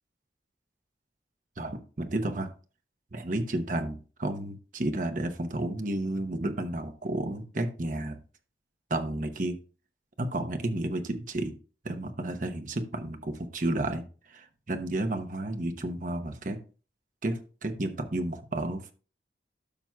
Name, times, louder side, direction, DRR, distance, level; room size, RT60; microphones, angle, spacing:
voice 1, 1.6-2.5 3.1-8.2 8.9-9.5 10.2-11.5 11.8-16.6 17.2-18.9, right 1 dB, 45° right, 6 dB, 0.9 m, -32 dB
12.0 x 5.9 x 2.3 m, 0.37 s
head